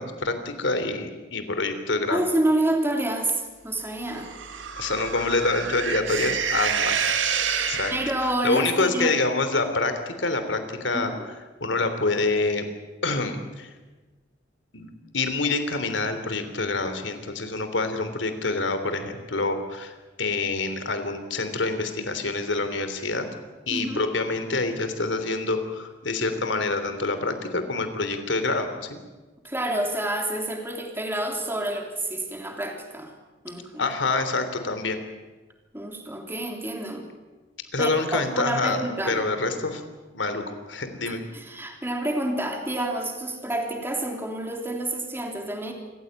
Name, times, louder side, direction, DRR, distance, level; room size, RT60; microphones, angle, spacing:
voice 1, 0.0-2.2 4.8-7.1 7.7-7.9 8.4-11.1 11.6-12.6 13.0-13.7 14.7-23.3 23.7-29.0 33.8-35.0 37.7-38.8 39.1-39.8 40.1-41.2, left 3 dB, 70° left, 8 dB, 3.3 m, -26 dB
voice 2, 2.1-4.3 7.5-9.2 10.9-11.3 23.7-24.0 29.4-33.1 33.4-33.9 35.7-37.1 37.8-39.2 41.0-45.7, right 1 dB, 10° right, 2 dB, 3.3 m, -28 dB
sound 1, 4.1-8.4, right 7 dB, 75° right, 1.9 m, -28 dB
27.0 x 15.5 x 9.1 m, 1.3 s
head